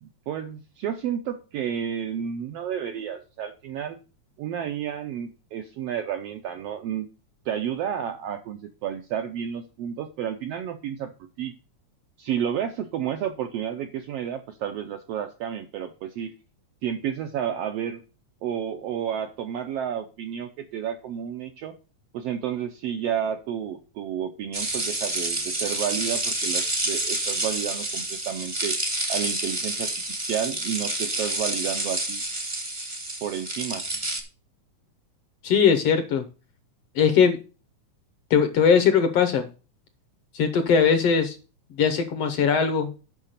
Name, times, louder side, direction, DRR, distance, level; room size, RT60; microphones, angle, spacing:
voice 1, 0.0-4.0 4.4-7.1 7.4-11.5 12.2-16.3 16.8-18.0 18.4-21.7 22.1-28.8 29.1-32.2 33.2-33.8, right 9 dB, 75° right, 6 dB, 1.5 m, -31 dB
sound 1, 24.5-34.2, right 1 dB, 40° right, 0.4 m, -29 dB
voice 2, 35.4-36.2 37.0-37.4 38.3-39.5 40.4-41.4 41.8-42.9, left 6 dB, 65° left, 9 dB, 1.7 m, -20 dB
7.4 x 5.9 x 6.6 m, 0.34 s
omnidirectional pair, 3.5 m